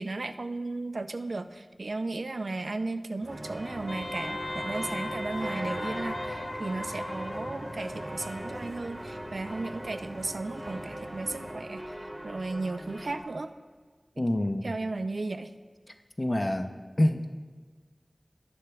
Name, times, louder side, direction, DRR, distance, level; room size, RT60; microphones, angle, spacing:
voice 1, 0.0-11.8 12.2-13.5 14.2-14.3 14.6-15.5, right 2 dB, 85° right, 10 dB, 0.4 m, -35 dB
sound 1, 3.2-11.5, right 1 dB, 60° right, 1.2 m, -46 dB
sound 2, 3.3-13.2, right 1 dB, 20° right, 1.8 m, -40 dB
Wind instrument woodwind instrument, 3.9-8.1, left 2 dB, 75° left, 0.8 m, -38 dB
voice 2, 14.2-14.7 16.2-16.7 17.0-17.3, left 1 dB, 40° left, 6 dB, 0.6 m, -26 dB
18.0 x 6.7 x 2.3 m, 1.5 s
wide cardioid pair, 60°, 0 cm